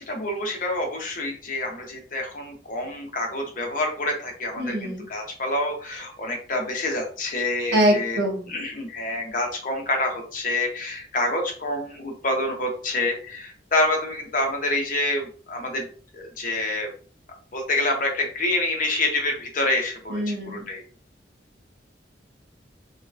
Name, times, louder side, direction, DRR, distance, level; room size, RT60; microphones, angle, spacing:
voice 1, 0.1-8.2 8.5-15.9 16.1-16.9 17.5-20.8, left 2 dB, 50° left, 2 dB, 0.8 m, -27 dB
voice 2, 4.6-5.0 7.7-8.4 20.1-20.6, right 1 dB, 75° right, 0 dB, 1.2 m, -23 dB
3.1 x 2.8 x 2.4 m, 0.41 s
head